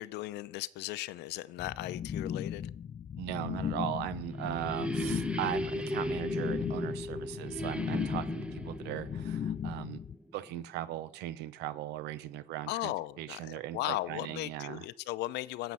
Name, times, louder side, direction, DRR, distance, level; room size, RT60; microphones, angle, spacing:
voice 1, 0.0-2.7 12.7-15.7, left 17 dB, 85° left, 0.6 m, -37 dB
sound 1, 1.6-10.1, left 8 dB, 35° left, 0.5 m, -37 dB
voice 2, 3.2-10.0 10.3-12.9 13.2-14.8, right 12 dB, 85° right, 0.7 m, -38 dB
sound 2, 3.8-10.5, equal, 5° right, 0.8 m, -37 dB
13.5 x 8.0 x 5.5 m
cardioid pair, 110°, 17 cm